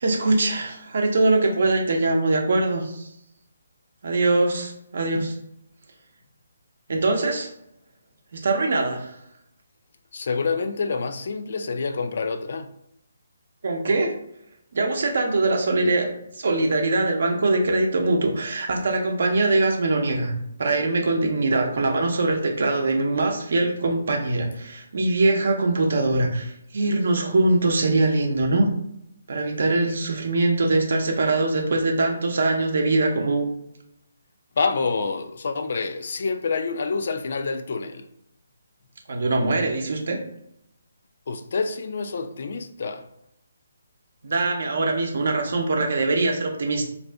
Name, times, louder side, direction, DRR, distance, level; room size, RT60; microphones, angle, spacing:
voice 1, 0.0-3.1 4.0-5.3 6.9-7.5 8.3-9.2 13.6-14.1 14.7-16.1 16.3-20.3 20.6-28.7 29.3-33.5 39.1-40.2 44.2-46.9, right 2 dB, 60° right, 0.7 m, -22 dB
voice 2, 10.1-12.7 34.6-38.1 41.3-43.1, left 4 dB, 55° left, 0.3 m, -27 dB
2.6 x 2.6 x 3.3 m
figure-of-eight pair, 145°, 0 cm